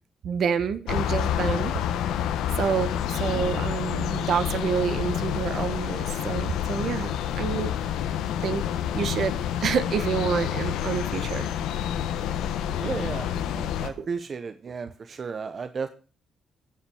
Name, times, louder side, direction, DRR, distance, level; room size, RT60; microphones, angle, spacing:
voice 1, 0.2-1.7 2.6-7.7 8.4-8.6 8.9-9.3 9.6-11.5 14.0-14.1, right 7 dB, 65° right, 12 dB, 1.3 m, -28 dB
sound 1, 0.9-13.9, left 10 dB, 85° left, 1.1 m, -28 dB
voice 2, 12.8-15.9, right 5 dB, 40° right, 9 dB, 0.8 m, -34 dB
15.5 x 6.0 x 6.3 m, 0.40 s
cardioid pair, 90°, 0 cm